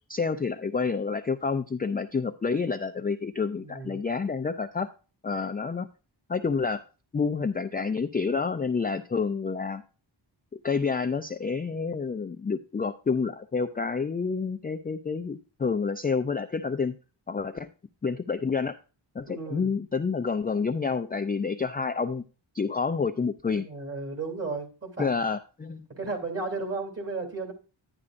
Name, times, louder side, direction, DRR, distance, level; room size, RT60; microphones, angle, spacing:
voice 1, 0.1-4.9 5.2-5.9 6.3-6.8 7.1-9.8 10.6-16.9 17.3-17.7 18.0-18.8 19.2-19.3 19.5-22.2 22.5-23.7 25.0-25.9, left 5 dB, 20° left, 9 dB, 0.4 m, -28 dB
voice 2, 3.5-4.0 19.3-19.7 23.5-25.2 25.9-27.5, right 3 dB, 30° right, 3 dB, 2.9 m, -34 dB
10.5 x 9.8 x 2.5 m, 0.35 s
wide cardioid pair, 100°, 46 cm